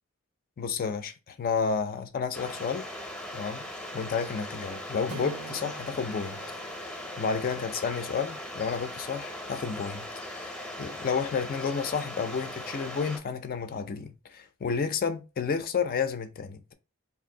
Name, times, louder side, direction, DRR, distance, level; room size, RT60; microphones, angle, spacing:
voice 1, 0.6-2.9 3.3-3.6 3.9-6.4 7.2-10.1 10.3-16.7, left 5 dB, 40° left, 0.4 m, -31 dB
sound 1, 2.3-13.2, left 1 dB, 5° left, 0.6 m, -39 dB
sound 2, 5.1-9.6, right 7 dB, 65° right, 0.5 m, -48 dB
2.6 x 2.6 x 3.7 m
head